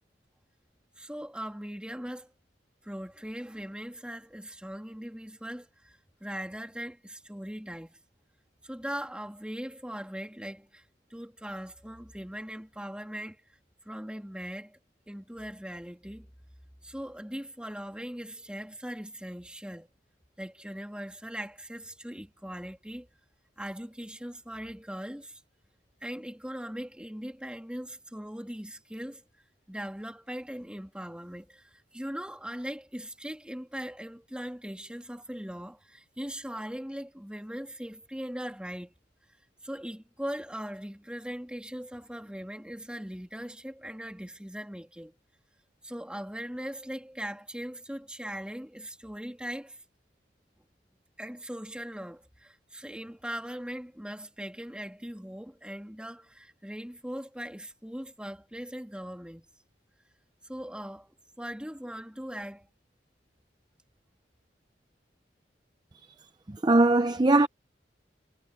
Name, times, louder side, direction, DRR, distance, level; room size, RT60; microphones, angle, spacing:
voice 1, 1.0-2.3 2.8-8.0 8.6-10.8 11.1-13.4 13.8-14.8 15.1-16.3 16.8-19.9 20.4-23.1 23.6-25.4 26.0-29.2 29.7-38.9 39.6-45.1 45.8-49.8 51.2-59.5 60.4-62.7, equal, 5° right, 3.0 m, -40 dB
voice 2, 66.5-67.5, right 2 dB, 25° right, 0.6 m, -21 dB
head